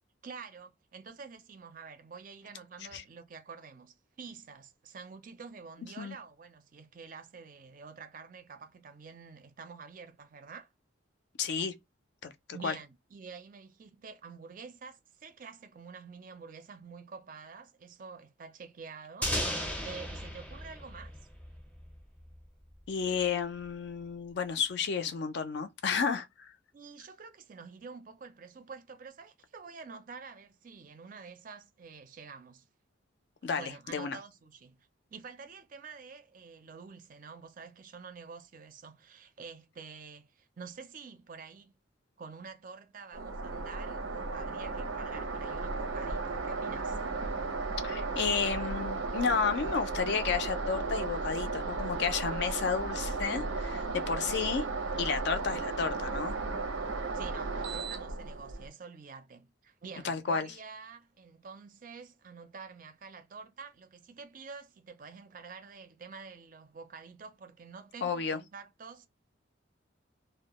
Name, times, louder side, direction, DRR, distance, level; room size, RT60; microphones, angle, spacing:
voice 1, 0.2-10.7 12.5-21.2 26.7-32.7 33.6-41.7 42.2-47.0 57.1-69.1, right 5 dB, 45° right, 0.4 m, -48 dB
voice 2, 11.4-11.8 12.2-12.3 12.6-12.8 22.9-26.5 33.4-34.2 47.8-54.6 55.0-56.4 60.0-60.5 68.0-68.4, left 6 dB, 60° left, 0.4 m, -32 dB
sound 1, 19.2-22.0, equal, 5° left, 0.5 m, -35 dB
sound 2, 43.1-58.7, right 3 dB, 90° right, 0.6 m, -35 dB
2.2 x 2.1 x 2.9 m
head